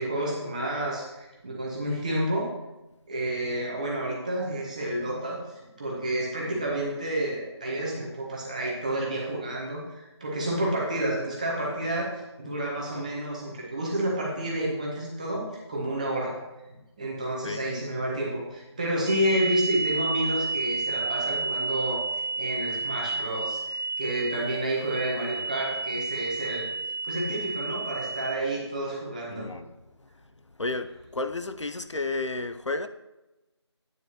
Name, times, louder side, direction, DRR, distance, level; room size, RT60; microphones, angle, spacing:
voice 1, 0.0-2.5 3.1-12.1 12.4-15.4 15.7-16.3 16.7-26.6 27.0-29.5, right 1 dB, 15° right, 1.2 m, -30 dB
sound 1, 19.1-28.3, right 3 dB, 45° right, 0.8 m, -31 dB
voice 2, 29.3-30.1 30.6-32.9, left 3 dB, 90° left, 0.6 m, -32 dB
9.2 x 9.1 x 3.0 m
figure-of-eight pair, 170°, 15 cm